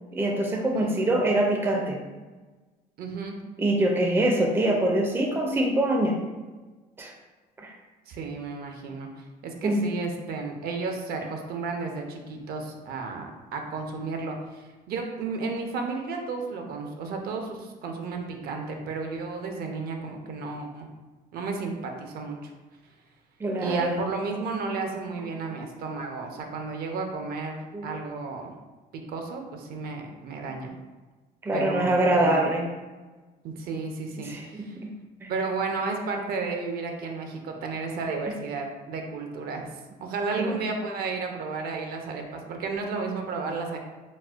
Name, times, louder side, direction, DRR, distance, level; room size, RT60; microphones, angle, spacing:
voice 1, 0.1-2.0 3.6-6.2 7.0-7.1 7.6-7.7 9.6-9.9 23.4-24.0 27.7-27.9 31.4-32.7 34.2-34.9 35.2-35.3 40.4-40.6, right 1 dB, 15° right, 1 dB, 0.4 m, -24 dB
voice 2, 3.0-3.4 8.1-9.1 9.4-20.9 21.3-22.5 23.6-28.5 28.9-30.7 31.5-32.5 33.4-34.8 35.3-39.7 40.0-43.8, right 4 dB, 65° right, 3 dB, 0.5 m, -33 dB
4.1 x 2.1 x 2.4 m, 1.3 s
cardioid pair, 110°, 17 cm